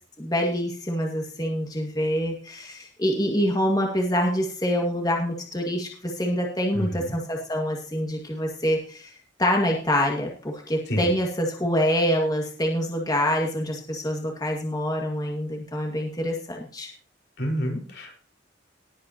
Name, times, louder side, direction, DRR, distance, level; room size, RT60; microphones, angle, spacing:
voice 1, 0.2-9.1 9.4-16.9, equal, 20° left, 1 dB, 2.0 m, -26 dB
voice 2, 6.7-7.1 10.9-11.1 17.4-18.2, equal, 70° left, 1 dB, 4.9 m, -29 dB
19.5 x 8.6 x 3.0 m, 0.43 s
head